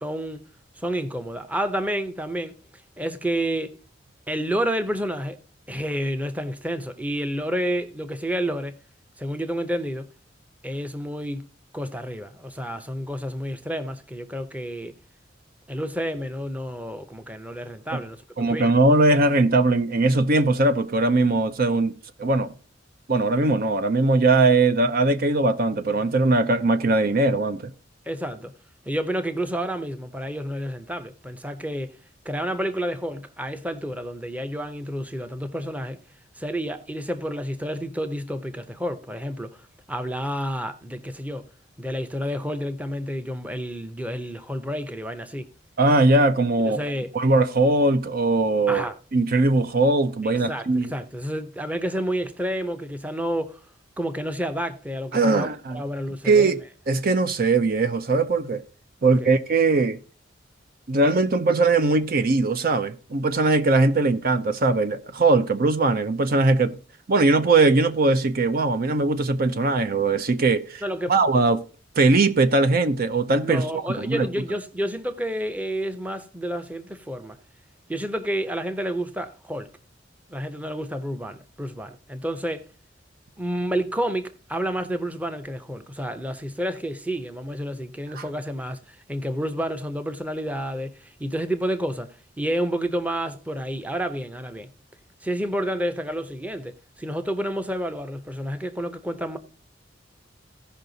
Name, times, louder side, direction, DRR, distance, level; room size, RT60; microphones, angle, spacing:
voice 1, 0.0-0.4 0.8-2.5 3.0-3.7 4.3-5.4 5.7-8.8 9.2-10.1 10.6-11.5 11.7-15.0 15.7-18.7 28.1-28.5 28.9-32.0 32.2-36.0 36.4-39.6 39.9-41.5 41.8-45.5 46.6-47.1 48.7-49.0 50.2-53.6 54.0-56.6 59.0-59.3 70.8-71.1 73.4-77.4 77.9-79.7 80.3-82.6 83.4-94.7 95.2-99.4, equal, 10° right, 0.7 m, -30 dB
voice 2, 18.4-21.9 22.2-22.5 23.1-27.7 45.8-46.8 47.1-48.8 49.1-50.9 55.1-55.8 56.2-56.6 56.9-58.6 59.0-60.0 60.9-66.8 67.1-70.8 71.1-71.6 72.0-74.3 88.1-88.2, right 3 dB, 50° right, 0.6 m, -20 dB
15.5 x 5.6 x 4.0 m
head